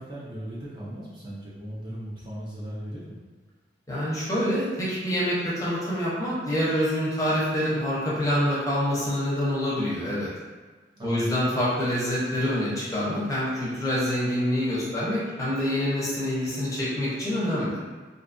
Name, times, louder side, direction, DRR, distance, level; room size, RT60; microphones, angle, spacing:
voice 1, 0.0-3.2 11.0-11.4, equal, 25° right, -8 dB, 0.4 m, -37 dB
voice 2, 3.9-10.3 11.0-17.8, equal, 20° left, -8 dB, 0.6 m, -26 dB
2.6 x 2.3 x 2.5 m, 1.4 s
head